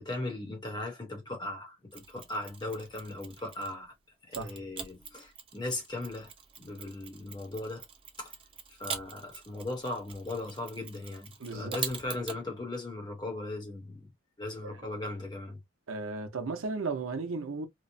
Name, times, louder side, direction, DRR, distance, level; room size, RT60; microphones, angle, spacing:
voice 1, 0.0-4.0 4.3-6.3 6.6-7.9 8.2-8.3 8.8-14.1 14.4-15.6, left 2 dB, 20° left, 0.9 m, -38 dB
Mechanisms, 1.9-3.8 4.3-12.4, right 6 dB, 25° right, 0.5 m, -44 dB
voice 2, 11.4-11.8 14.6-14.7 15.9-17.7, right 3 dB, 90° right, 0.7 m, -35 dB
3.0 x 2.1 x 2.6 m
head